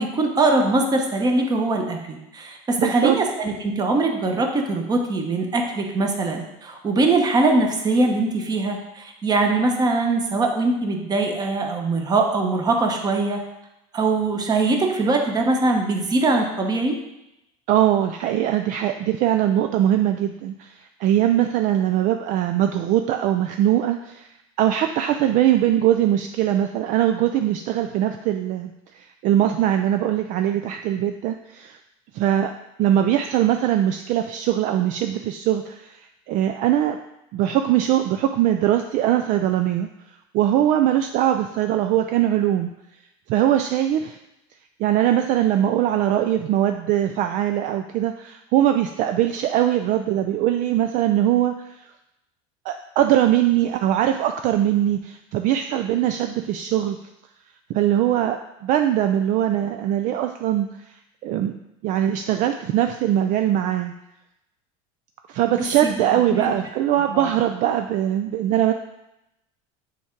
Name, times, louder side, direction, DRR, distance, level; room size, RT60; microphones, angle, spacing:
voice 1, 0.0-13.4 13.9-17.0 65.6-65.9 66.3-66.5 67.1-67.3, right 2 dB, 25° right, 3 dB, 1.0 m, -22 dB
voice 2, 2.8-3.2 17.7-24.3 24.6-31.8 32.1-32.5 32.8-37.0 37.3-39.9 40.3-42.7 43.3-44.2 44.8-51.9 52.7-57.0 57.7-60.9 61.2-63.9 65.3-68.7, right 11 dB, 50° right, 6 dB, 0.4 m, -21 dB
7.0 x 3.6 x 4.6 m, 0.89 s
supercardioid pair, 125°, 17 cm